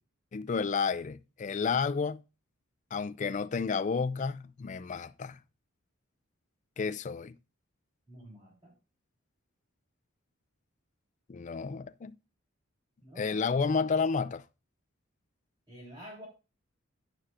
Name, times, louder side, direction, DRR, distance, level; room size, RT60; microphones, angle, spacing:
voice 1, 0.3-2.2 2.9-5.4 6.8-7.4 11.3-12.1 13.2-14.4, left 5 dB, 35° left, 0.4 m, -31 dB
voice 2, 8.1-8.7 13.0-13.6 15.7-16.3, equal, 20° right, 3.6 m, -49 dB
14.5 x 5.7 x 2.5 m
head